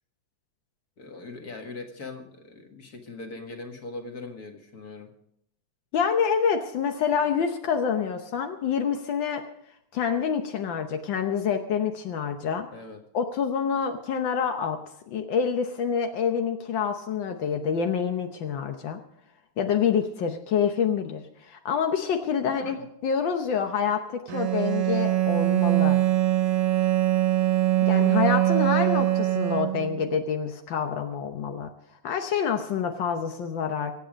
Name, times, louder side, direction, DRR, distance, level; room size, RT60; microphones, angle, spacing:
voice 1, 1.0-5.1 12.7-13.0 22.6-22.8 26.8-26.9 29.7-29.8, left 3 dB, 35° left, 4 dB, 1.8 m, -41 dB
voice 2, 5.9-9.4 9.9-12.7 13.1-14.8 15.1-19.0 19.6-26.0 27.9-31.7 32.0-33.9, left 7 dB, 75° left, 5 dB, 1.0 m, -27 dB
Bowed string instrument, 24.3-30.1, right 15 dB, 80° right, 2.5 m, -23 dB
24.0 x 8.4 x 5.2 m, 0.74 s
omnidirectional pair, 3.4 m